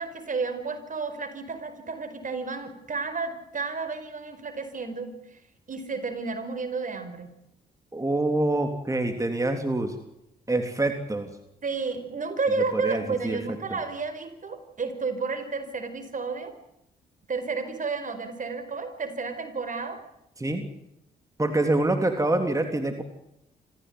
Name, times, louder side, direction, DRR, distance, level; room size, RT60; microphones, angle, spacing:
voice 1, 0.0-5.4 5.7-7.4 11.6-16.5 17.3-20.0, right 4 dB, 50° right, 9 dB, 5.1 m, -31 dB
voice 2, 7.9-9.9 10.5-11.3 12.7-13.4 20.4-20.7 21.4-23.0, right 2 dB, 20° right, 5 dB, 3.4 m, -26 dB
26.0 x 15.5 x 9.7 m, 0.83 s
supercardioid pair, 60°, 18 cm